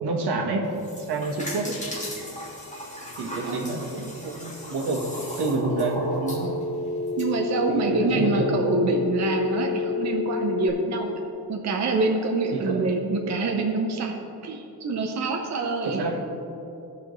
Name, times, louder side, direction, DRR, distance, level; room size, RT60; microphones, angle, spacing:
voice 1, 0.0-1.8 3.2-5.0 5.4-6.5 7.7-8.5 12.5-12.9 15.8-16.2, right 3 dB, 75° right, 1 dB, 1.3 m, -28 dB
sound 1, 0.6-7.3, left 1 dB, 20° left, 1.6 m, -37 dB
Telephone, 5.7-10.7, left 5 dB, 45° left, 0.7 m, -29 dB
voice 2, 7.2-11.2 11.5-16.1, right 3 dB, 40° right, 1 dB, 0.7 m, -26 dB
16.0 x 5.8 x 3.1 m, 2.9 s
wide cardioid pair, 155°, 40 cm